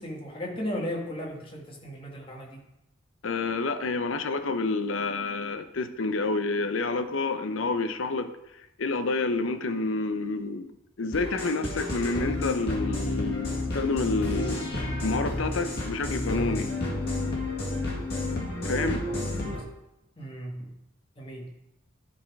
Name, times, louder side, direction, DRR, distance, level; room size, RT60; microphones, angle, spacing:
voice 1, 0.0-2.6 19.1-19.6 20.2-20.7 21.2-21.5, equal, 25° left, -1 dB, 1.4 m, -36 dB
voice 2, 3.2-8.3 8.8-10.7 11.0-14.6 15.0-16.7 18.6-19.0, left 3 dB, 75° left, 9 dB, 0.6 m, -28 dB
sound 1, 11.1-19.6, left 2 dB, 50° left, 1.9 m, -31 dB
11.0 x 4.1 x 4.7 m, 0.90 s
head